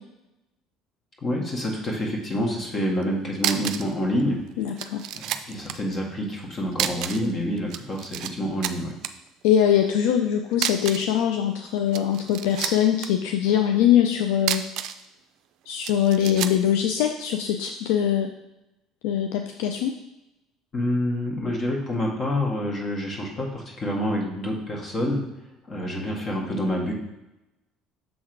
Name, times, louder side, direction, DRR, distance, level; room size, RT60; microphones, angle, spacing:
voice 1, 1.2-4.4 5.1-8.9 20.7-25.2 25.7-26.9, equal, 40° left, 0 dB, 1.8 m, -27 dB
sound 1, 3.0-3.1 3.4-3.9 4.2-4.3 4.8-5.8 6.7-7.3 7.6-8.3 8.6-9.1 10.5-11.1 11.8-13.1 14.3-15.0 15.8-16.6, right 11 dB, 65° right, 0.4 m, -29 dB
voice 2, 4.6-5.0 9.4-14.6 15.7-18.3 19.0-19.9, left 10 dB, 75° left, 5 dB, 0.4 m, -22 dB
6.2 x 3.7 x 4.6 m, 0.92 s
hypercardioid pair, 70°, 0 cm